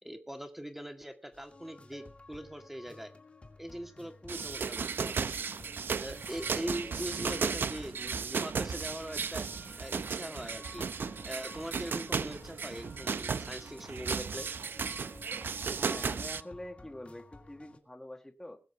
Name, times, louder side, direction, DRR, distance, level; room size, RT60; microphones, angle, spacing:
voice 1, 0.0-3.1 3.6-5.5 6.0-9.5 9.8-10.9 11.2-14.5, equal, 5° right, 6 dB, 2.0 m, -42 dB
sound 1, 1.3-17.8, left 3 dB, 35° left, 2.2 m, -54 dB
sound 2, 4.3-16.4, right 5 dB, 85° right, 0.6 m, -35 dB
voice 2, 15.7-18.6, left 1 dB, 10° left, 3 dB, 1.8 m, -45 dB
20.5 x 8.0 x 4.6 m, 0.34 s
wide cardioid pair, 120°, 4 cm